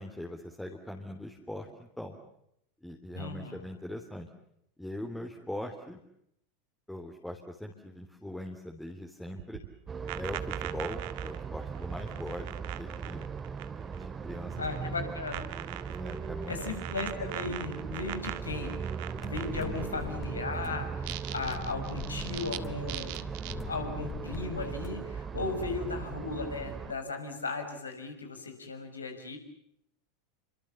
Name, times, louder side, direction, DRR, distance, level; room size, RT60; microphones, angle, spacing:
voice 1, 0.0-2.2 2.8-4.3 4.8-6.0 6.9-9.6 10.2-13.3 14.0-15.1 16.0-16.5 19.6-19.9 25.4-25.5, left 1 dB, 5° left, 2 dB, 3.3 m, -41 dB
voice 2, 3.1-3.6 14.6-15.5 16.5-18.8 19.2-23.2 23.7-29.4, left 3 dB, 80° left, 6 dB, 6.1 m, -36 dB
sound 1, 9.4-14.0 14.3-14.9 15.3-20.0 20.9-22.6 22.9-23.5, right 17 dB, 55° right, 1.8 m, -41 dB
sound 2, 9.9-26.9, right 6 dB, 20° right, 2.5 m, -38 dB
sound 3, 19.1-25.1, left 6 dB, 25° left, 4.4 m, -44 dB
30.0 x 25.0 x 7.1 m, 0.75 s
figure-of-eight pair, 85°, 0 cm